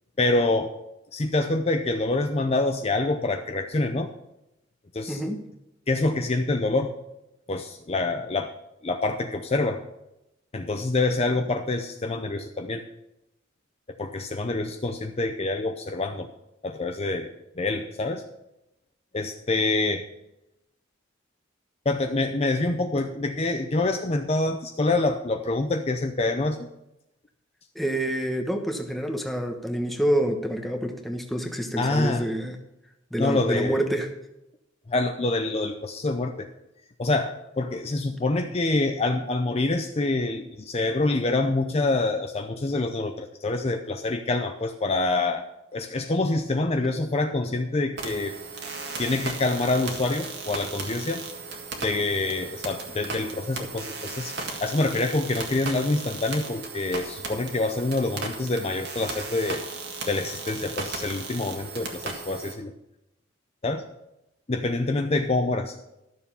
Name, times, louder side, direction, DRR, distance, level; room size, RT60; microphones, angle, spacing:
voice 1, 0.2-0.7 1.1-4.1 4.9-5.2 5.9-6.9 7.5-8.5 8.8-9.8 10.5-12.8 14.0-16.3 16.6-18.2 19.1-20.0 21.9-26.7 31.8-32.3 33.2-33.8 34.9-36.5 37.0-45.4 45.7-48.3 49.0-51.3 51.8-59.6 60.0-62.7 63.6-63.8 64.5-65.8, left 2 dB, 30° left, 5 dB, 0.6 m, -26 dB
voice 2, 5.1-5.5 27.7-32.6 33.1-34.1, right 1 dB, ahead, 3 dB, 1.1 m, -27 dB
sound 1, 48.0-62.5, right 3 dB, 55° right, 1.8 m, -36 dB
12.5 x 6.9 x 5.5 m, 0.89 s
head